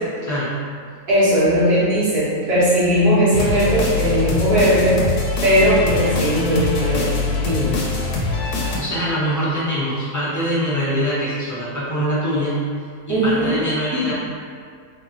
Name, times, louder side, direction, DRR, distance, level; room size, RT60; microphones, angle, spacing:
voice 1, 0.2-0.5 8.8-12.6 13.1-14.1, equal, 20° left, -9 dB, 0.4 m, -23 dB
voice 2, 1.1-5.0 5.4-7.8 13.1-13.5 13.9-14.1, equal, 85° right, -9 dB, 1.6 m, -18 dB
sound 1, 3.3-8.8, left 3 dB, 80° left, 1.2 m, -23 dB
3.2 x 2.9 x 3.8 m, 2.1 s
omnidirectional pair, 1.7 m